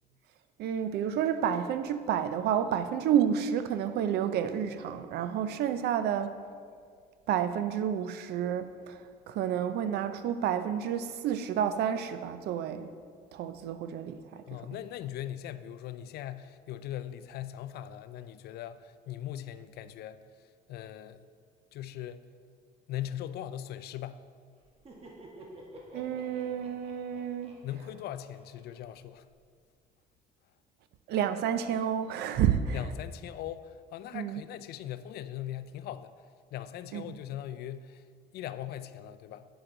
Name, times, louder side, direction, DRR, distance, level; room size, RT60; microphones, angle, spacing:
voice 1, 0.6-6.4 7.3-12.9 13.3-14.5 25.9-27.6 31.1-32.8 34.1-34.4 36.9-37.0, right 9 dB, 75° right, 0.6 m, -30 dB
voice 2, 14.5-20.2 20.7-21.2 21.7-22.2 22.9-24.2 27.6-29.3 32.7-36.1 36.5-38.0 38.3-39.5, left 11 dB, 70° left, 0.4 m, -40 dB
Laughter, 24.6-29.3, right 1 dB, 35° right, 1.4 m, -52 dB
9.2 x 7.8 x 3.9 m
cardioid pair, 110°, 17 cm